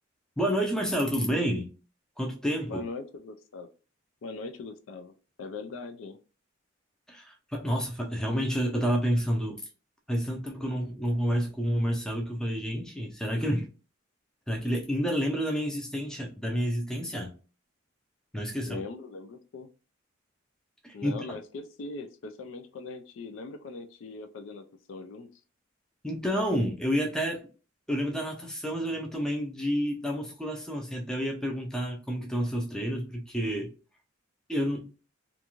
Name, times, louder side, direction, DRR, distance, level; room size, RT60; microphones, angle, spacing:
voice 1, 0.4-1.7 2.2-2.8 7.1-9.6 10.1-13.7 14.5-17.3 18.3-18.8 20.8-21.2 26.0-27.5 27.9-33.7 34.5-34.9, equal, 5° left, 0.4 m, -29 dB
voice 2, 2.6-3.7 4.2-5.1 5.4-6.2 18.6-19.7 20.9-25.3, left 3 dB, 70° left, 0.4 m, -40 dB
2.5 x 2.3 x 2.9 m
head